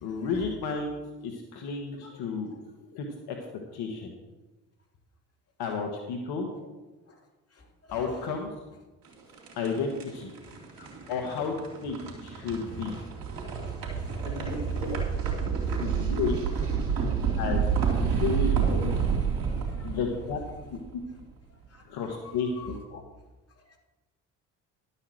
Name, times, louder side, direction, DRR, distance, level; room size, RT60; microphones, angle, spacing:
voice 1, 0.0-2.5 2.9-3.4 3.7-4.1 5.6-6.5 7.9-8.5 9.6-10.3 10.8-12.9 14.2-15.0 15.8-16.4 17.3-17.6 18.2-18.9 19.8-20.4 20.7-21.0 21.8-22.8, left 5 dB, 75° left, 2 dB, 1.4 m, -32 dB
sound 1, 9.0-21.1, right 6 dB, 60° right, 3.2 m, -29 dB
voice 2, 13.6-14.3 14.7-14.8 15.6-15.8 16.8-16.9 18.1-18.2 19.8-19.9 21.7-21.8 22.6-23.0 23.7-23.8, left 4 dB, 40° left, 0 dB, 3.2 m, -48 dB
11.5 x 5.7 x 7.7 m, 1.1 s
supercardioid pair, 65°, 38 cm